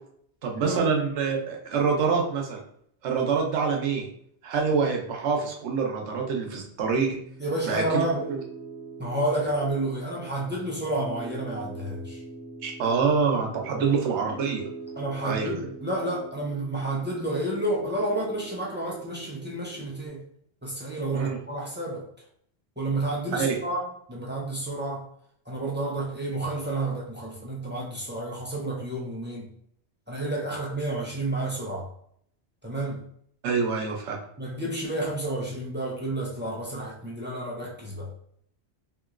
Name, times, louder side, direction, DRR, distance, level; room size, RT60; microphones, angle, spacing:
voice 1, 0.4-2.6 3.0-4.1 4.4-7.2 7.6-8.0 8.3-8.4 12.6-14.7 15.2-15.7 21.1-21.4 23.4-23.6 33.4-34.2, right 5 dB, 85° right, 2 dB, 1.0 m, -26 dB
Piano, 7.0-20.1, right 4 dB, 20° left, 1.2 m, -43 dB
voice 2, 7.4-8.2 9.0-12.2 13.8-14.0 15.0-20.2 20.6-22.1 22.8-25.1 25.5-29.5 30.1-31.9 32.6-33.0 34.4-38.1, right 1 dB, 15° right, -4 dB, 0.3 m, -30 dB
2.9 x 2.8 x 2.4 m, 0.66 s
omnidirectional pair, 1.1 m